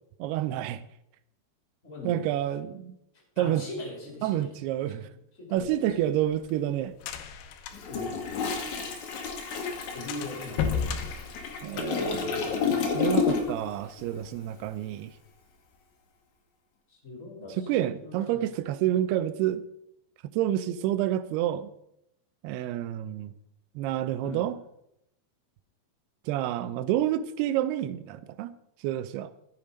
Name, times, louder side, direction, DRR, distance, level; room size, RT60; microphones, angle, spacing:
voice 1, 0.2-0.8 2.0-3.0 3.4-3.7 4.2-5.1 5.5-6.9 11.6-12.3 12.9-15.1 17.6-19.6 20.4-21.7 22.4-23.3 23.8-24.6 26.3-28.5 28.8-29.3, right 12 dB, 85° right, 2.7 m, -28 dB
voice 2, 1.8-2.4 3.3-4.5 4.8-4.9 5.4-6.1 7.9-8.2 9.9-10.9 11.7-12.6 16.9-18.5 24.2-24.4, left 1 dB, 20° left, 3.2 m, -40 dB
sound 1, 5.6-9.0 9.3-9.4 9.7-9.8 10.1-12.1, left 7 dB, 75° left, 2.6 m, -34 dB
Toilet flush, 7.7-13.7 14.0-14.2, left 5 dB, 60° left, 2.5 m, -30 dB
14.5 x 6.9 x 5.2 m
omnidirectional pair, 4.5 m